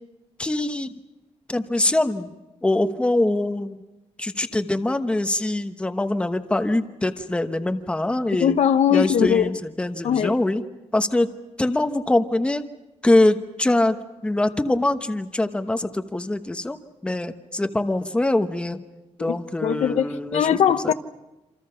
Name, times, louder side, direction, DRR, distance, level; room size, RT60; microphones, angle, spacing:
voice 1, 0.4-1.0 1.5-2.3 2.6-3.8 4.2-8.6 8.9-10.6 10.9-11.3 11.6-12.7 13.0-14.0 14.2-16.8 17.0-18.8 19.2-20.5 20.8-20.9, left 1 dB, 10° left, 1.1 m, -23 dB
voice 2, 8.4-9.5 10.0-10.3 19.3-20.9, left 8 dB, 75° left, 1.0 m, -21 dB
27.5 x 27.0 x 5.8 m
wide cardioid pair, 165°, 11 cm